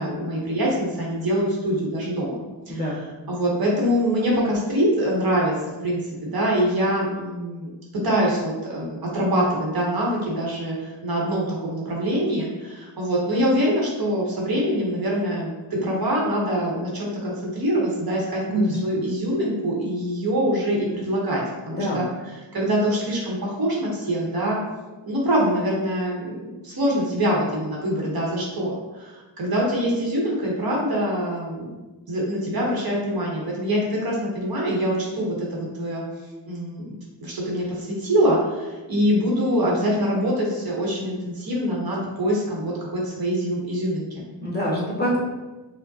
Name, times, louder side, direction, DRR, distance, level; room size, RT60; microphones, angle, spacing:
voice 1, 0.0-2.4 2.7-5.5 5.8-7.7 8.0-24.6 25.0-31.7 32.1-36.0 36.4-36.9 37.2-44.2, equal, 50° right, -3 dB, 1.0 m, -24 dB
voice 2, 18.5-19.0 21.8-22.0 44.4-45.2, equal, 20° left, -5 dB, 0.9 m, -25 dB
4.7 x 2.2 x 2.7 m, 1.1 s
wide cardioid pair, 125°, 48 cm